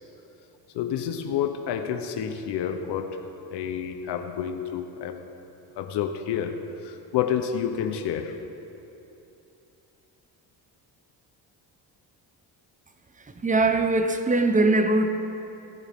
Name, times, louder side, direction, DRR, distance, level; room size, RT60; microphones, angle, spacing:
voice 1, 0.7-3.2 3.5-5.3 5.8-8.4, left 8 dB, 80° left, 6 dB, 0.9 m, -29 dB
voice 2, 13.2-15.1, right 2 dB, 20° right, 7 dB, 0.9 m, -22 dB
18.0 x 11.0 x 3.6 m, 2.9 s
cardioid pair, 95°, 40 cm